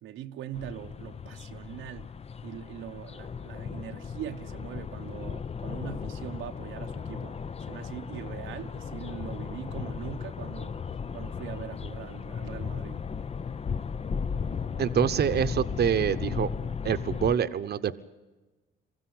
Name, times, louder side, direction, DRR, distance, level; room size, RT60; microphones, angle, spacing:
voice 1, 0.0-2.1 2.4-7.4 7.7-10.8 11.1-13.0, right 11 dB, 90° right, 1.1 m, -41 dB
sound 1, 0.5-17.4, left 6 dB, 30° left, 0.7 m, -36 dB
voice 2, 14.8-16.5 16.8-18.0, right 8 dB, 55° right, 1.0 m, -26 dB
23.5 x 15.5 x 10.0 m
cardioid pair, 90°, 20 cm